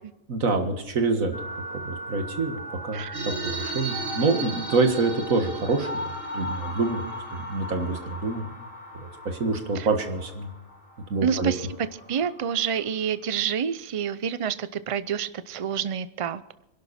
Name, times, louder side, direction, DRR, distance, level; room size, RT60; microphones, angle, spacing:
voice 1, 0.3-1.3 1.7-7.0 7.3-8.5 8.9-10.5 11.1-11.5, right 3 dB, 80° right, 5 dB, 2.1 m, -26 dB
sound 1, 1.3-13.0, equal, 70° left, 3.9 m, -39 dB
voice 2, 2.9-3.3 9.7-9.9 11.2-16.4, right 8 dB, 45° right, 14 dB, 0.4 m, -28 dB
sound 2, 3.1-8.0, right 4 dB, 60° right, 2.7 m, -36 dB
25.5 x 11.5 x 4.2 m, 0.93 s
omnidirectional pair, 1.4 m